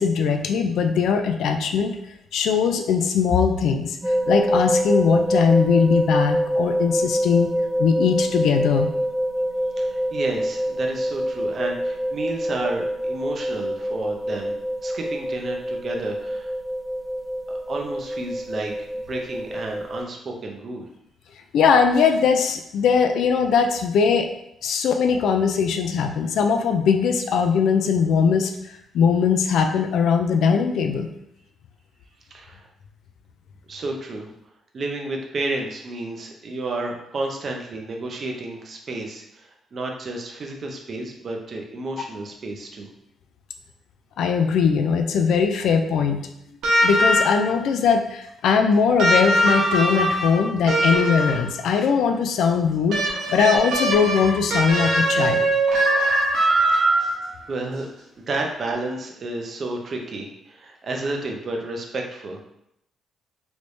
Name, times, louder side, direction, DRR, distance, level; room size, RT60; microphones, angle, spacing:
voice 1, 0.0-2.0 2.3-7.5 7.8-8.9 21.5-24.3 24.6-28.5 28.9-31.1 44.2-46.2 46.8-55.5, left 6 dB, 80° left, 5 dB, 0.4 m, -20 dB
sound 1, 4.0-20.0, equal, 10° right, 0.4 m, -25 dB
voice 2, 9.8-14.6 14.8-16.5 17.5-20.9 32.3-32.7 33.7-34.3 34.7-42.9 56.7-57.1 57.5-57.9 58.2-62.4, right 2 dB, 45° right, 1 dB, 0.6 m, -31 dB
sound 2, 46.6-47.6 49.0-51.6 52.9-57.4 58.7-58.8, right 1 dB, 80° right, 1.0 m, -21 dB
3.2 x 3.1 x 2.6 m, 0.78 s
cardioid pair, 110°, 0 cm